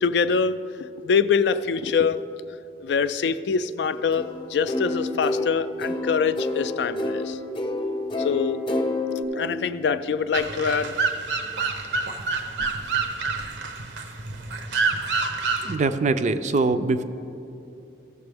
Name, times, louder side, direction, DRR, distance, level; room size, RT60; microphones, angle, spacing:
voice 1, 0.0-2.2 2.8-7.4 8.2-8.6 9.3-11.0, left 6 dB, 70° left, 13 dB, 0.3 m, -24 dB
sound 1, 4.1-9.2, left 2 dB, 30° left, 0.8 m, -29 dB
sound 2, 10.3-15.8, right 4 dB, 80° right, 0.7 m, -27 dB
voice 2, 15.6-17.0, right 3 dB, 40° right, 11 dB, 0.4 m, -23 dB
15.0 x 6.8 x 3.4 m, 2.8 s
head